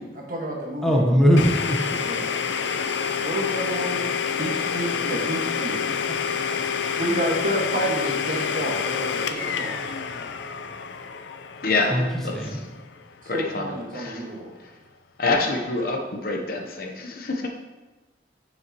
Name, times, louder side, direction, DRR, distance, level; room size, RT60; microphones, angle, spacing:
voice 1, 0.0-1.5 2.0-2.3 3.2-4.1 4.4-5.8 6.1-9.8 11.9-12.0 13.2-14.5, right 1 dB, 45° right, -2 dB, 1.5 m, -30 dB
voice 2, 0.8-2.0 11.9-12.1 12.3-12.6, equal, ahead, -2 dB, 0.9 m, -20 dB
Domestic sounds home sounds, 1.4-13.0, left 6 dB, 70° left, 0.4 m, -28 dB
voice 3, 11.6-12.6 13.3-13.7 13.9-14.3 14.6-14.7 15.2-17.5, left 3 dB, 50° left, 2 dB, 0.8 m, -27 dB
9.2 x 6.3 x 3.0 m, 1.2 s
head